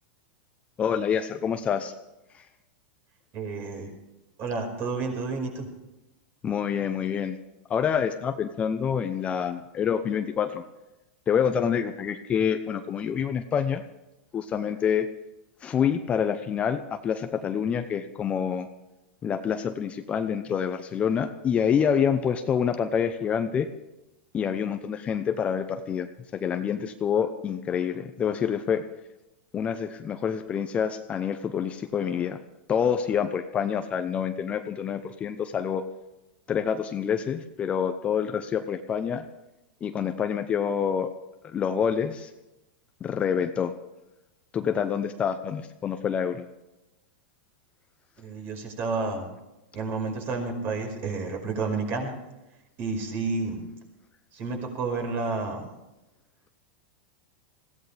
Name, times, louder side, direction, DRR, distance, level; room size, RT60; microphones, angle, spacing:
voice 1, 0.8-1.9 2.3-2.4 6.4-7.4 7.7-10.6 11.3-13.8 14.3-15.1 15.6-18.7 19.2-23.7 24.3-28.8 29.5-32.4 32.7-35.8 36.5-39.2 39.8-41.1 41.4-42.3 43.0-43.7 44.5-46.4, left 7 dB, 20° left, 8 dB, 0.8 m, -27 dB
voice 2, 3.3-3.9 4.4-5.7 48.2-49.3 49.7-52.1 52.8-53.6 54.3-55.7, right 4 dB, 40° right, 3 dB, 5.3 m, -30 dB
21.0 x 16.5 x 3.5 m, 0.99 s
supercardioid pair, 140°, 6 cm